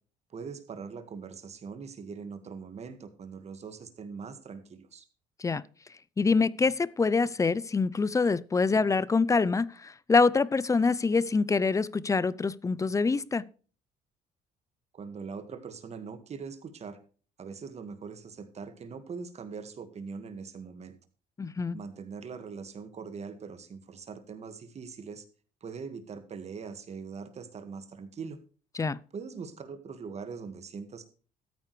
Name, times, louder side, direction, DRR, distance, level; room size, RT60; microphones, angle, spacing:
voice 1, 0.3-5.1 14.9-17.0 17.4-21.0 21.7-25.2 25.6-28.4 29.1-31.1, right 5 dB, 40° right, 1.8 m, -42 dB
voice 2, 6.2-13.4 21.4-21.8 28.8-29.0, left 4 dB, 20° left, 0.5 m, -25 dB
13.5 x 9.1 x 3.3 m
cardioid pair, 110°, 17 cm